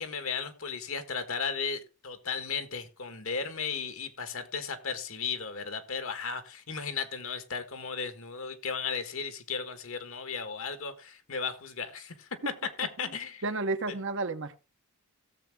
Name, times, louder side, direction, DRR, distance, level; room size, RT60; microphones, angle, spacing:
voice 1, 0.0-12.3 12.8-13.4 13.9-14.0, left 5 dB, 65° left, 9 dB, 1.5 m, -35 dB
voice 2, 13.4-14.6, right 3 dB, 60° right, 9 dB, 1.0 m, -32 dB
16.5 x 7.4 x 3.6 m, 0.32 s
head